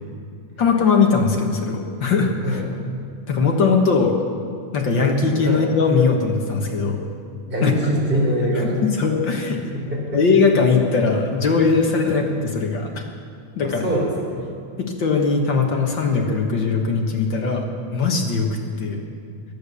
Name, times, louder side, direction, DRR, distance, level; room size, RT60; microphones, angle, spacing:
voice 1, 0.6-2.6 3.3-4.2 4.7-7.0 7.6-7.7 8.8-9.6 10.1-13.0 13.5-13.9 14.8-19.0, left 4 dB, 50° left, 1 dB, 1.5 m, -20 dB
voice 2, 7.5-8.7 9.7-10.2 12.0-12.2 13.6-14.4, equal, 15° right, -2 dB, 3.8 m, -23 dB
21.5 x 8.8 x 6.9 m, 2.4 s
omnidirectional pair, 3.4 m